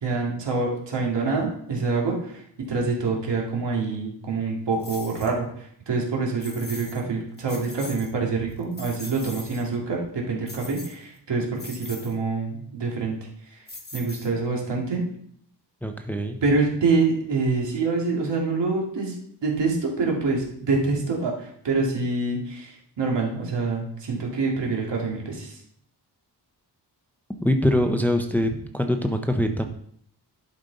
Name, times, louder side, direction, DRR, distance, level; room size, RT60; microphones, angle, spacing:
voice 1, 0.0-2.4 2.7-13.2 13.5-13.6 13.9-15.0 16.4-25.6, right 3 dB, 85° right, -1 dB, 2.4 m, -26 dB
sound 1, 4.8-5.3 6.4-7.0 7.4-8.1 8.5-9.7 10.5-11.2 11.6-12.1 13.7-14.5, left 2 dB, 25° left, 1.2 m, -41 dB
voice 2, 15.8-16.4 27.4-29.7, left 1 dB, 5° left, 5 dB, 0.6 m, -23 dB
11.5 x 5.1 x 4.0 m, 0.66 s
wide cardioid pair, 160°, 42 cm